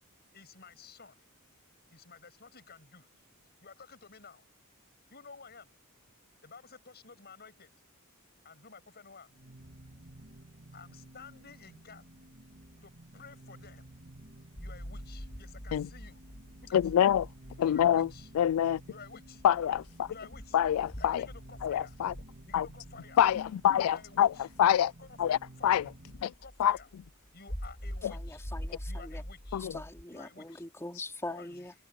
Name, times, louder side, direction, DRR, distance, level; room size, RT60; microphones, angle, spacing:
voice 1, 0.3-1.2 1.9-3.1 3.6-4.4 5.1-5.7 6.4-7.7 8.4-9.3 10.7-12.0 12.8-13.9 14.6-16.2 16.6-16.8 17.6-18.3 18.9-19.4 20.1-20.6 21.0-21.9 22.5-23.2 23.8-24.4 25.0-25.1 25.6-25.8 26.4-26.9 27.3-28.4 28.9-29.6 30.1-30.6 31.3-31.6, left 5 dB, 50° left, 6.9 m, -52 dB
sound 1, 9.3-26.3, right 1 dB, 50° right, 3.2 m, -54 dB
sound 2, 14.5-30.0, equal, 30° left, 4.0 m, -45 dB
voice 2, 16.7-17.3 17.6-18.1 18.3-18.8 19.4-20.1 20.5-21.3 21.6-22.1 22.5-22.7 23.2-24.9 25.2-25.9 26.6-26.8 28.0-28.1 29.5-29.8, left 10 dB, 75° left, 0.3 m, -26 dB
voice 3, 28.1-29.2 29.6-31.7, left 2 dB, 10° left, 4.0 m, -42 dB
head